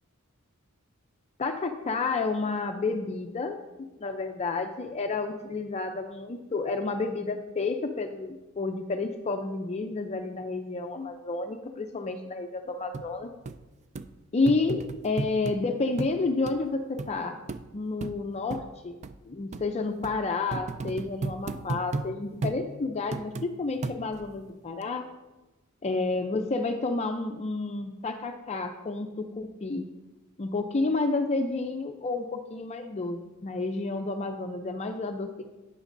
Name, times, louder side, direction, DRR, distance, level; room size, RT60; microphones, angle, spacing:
voice 1, 1.4-3.6 4.0-13.3 14.3-17.4 17.7-19.0 19.3-25.1 25.8-29.9 30.4-35.6, left 3 dB, 30° left, 5 dB, 0.4 m, -30 dB
sound 1, 12.9-13.1 13.5-13.6 14.0-14.1 14.5-15.6 16.0-16.2 16.5-16.6 17.0-17.1 17.5-17.6 18.0-18.2 18.5-18.6 19.0-19.1 19.5-19.7 20.0-20.2 20.5-22.1 22.4-22.6 23.1-23.5 23.8-24.3 24.8-24.9, right 3 dB, 30° right, 0.3 m, -33 dB
11.5 x 9.0 x 2.6 m, 1.1 s
head